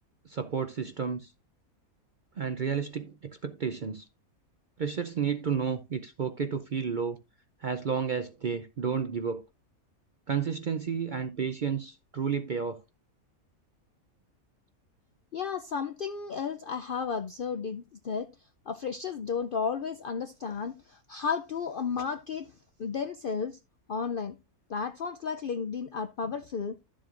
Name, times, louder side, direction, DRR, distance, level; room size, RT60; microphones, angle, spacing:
voice 1, 0.3-1.3 2.4-4.1 4.8-7.2 7.6-9.4 10.3-12.8, right 6 dB, 55° right, 0.5 m, -31 dB
voice 2, 15.3-18.3 18.7-22.5 22.8-23.6 23.9-24.4 24.7-26.8, left 6 dB, 65° left, 0.5 m, -33 dB
12.0 x 7.5 x 2.5 m
omnidirectional pair, 1.5 m